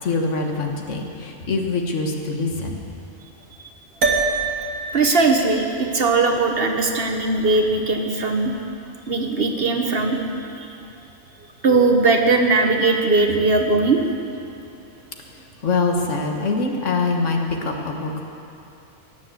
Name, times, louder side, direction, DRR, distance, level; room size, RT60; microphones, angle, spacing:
voice 1, 0.0-2.8 15.3-18.2, left 3 dB, 65° left, 2 dB, 1.7 m, -24 dB
sound 1, 4.0-8.6, right 4 dB, 80° right, 1.8 m, -28 dB
voice 2, 4.9-8.5 9.1-10.7 11.6-14.0, right 3 dB, 50° right, 3 dB, 1.1 m, -19 dB
18.5 x 7.6 x 7.8 m, 2.7 s
omnidirectional pair, 1.4 m